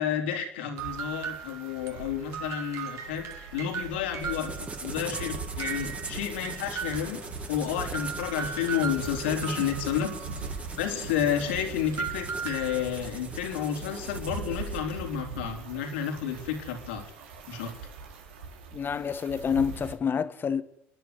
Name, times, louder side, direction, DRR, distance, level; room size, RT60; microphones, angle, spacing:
voice 1, 0.0-7.2 7.5-10.1 10.8-17.0 17.5-17.7, left 8 dB, 85° left, 4.0 m, -31 dB
sound 1, 0.7-4.9 5.1-13.1, right 7 dB, 55° right, 3.2 m, -38 dB
sound 2, 0.8-19.9, right 4 dB, 90° right, 3.5 m, -42 dB
sound 3, 4.2-14.9, right 3 dB, 20° right, 2.4 m, -41 dB
voice 2, 18.7-20.6, left 7 dB, 35° left, 1.6 m, -28 dB
29.5 x 11.0 x 9.5 m
hypercardioid pair, 80°, 6 cm